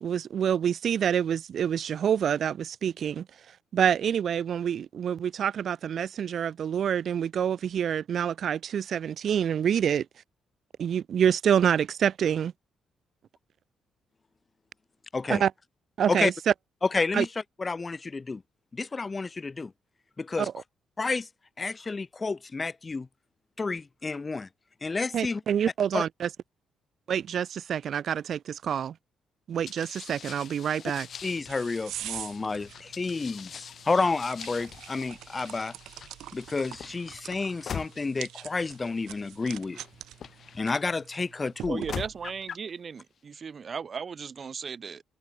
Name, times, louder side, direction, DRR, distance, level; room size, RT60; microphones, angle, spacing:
voice 1, 0.0-3.3 3.7-10.1 10.8-12.5 15.3-15.5 16.0-16.3 17.1-17.3 20.4-20.5 25.1-26.3 27.1-28.9 29.5-31.1, right 8 dB, 60° right, 1.8 m, -27 dB
voice 2, 16.8-17.3 17.6-18.4 18.7-19.7 20.2-20.5 21.0-21.3 21.6-23.1 23.6-24.5 24.8-25.4 25.9-26.1 31.2-35.7 36.3-39.8 40.5-41.8, left 3 dB, 25° left, 1.7 m, -30 dB
sound 1, 29.7-40.9 41.6-42.7, left 7 dB, 55° left, 4.5 m, -43 dB
sound 2, 30.9-42.4, right 13 dB, 80° right, 1.9 m, -45 dB
voice 3, 41.7-45.0, right 6 dB, 45° right, 2.2 m, -36 dB
cardioid pair, 90°, 0 cm